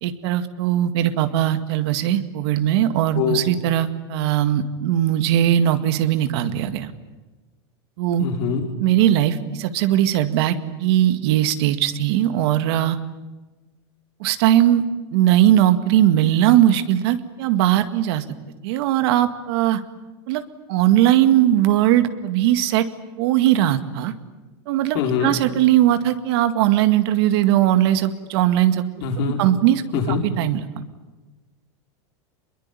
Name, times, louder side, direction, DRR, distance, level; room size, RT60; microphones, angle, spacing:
voice 1, 0.0-6.9 8.0-8.3 8.8-13.0 14.2-14.8 15.1-18.2 18.6-19.8 20.3-20.4 20.7-22.9 23.2-24.1 24.7-28.8 29.4-30.7, right 12 dB, 65° right, 10 dB, 2.0 m, -19 dB
voice 2, 3.1-3.5 8.2-8.7 24.9-25.3 29.0-29.4 29.9-30.2, left 6 dB, 60° left, 2 dB, 5.1 m, -23 dB
24.0 x 22.0 x 9.9 m, 1.2 s
supercardioid pair, 125°, 14 cm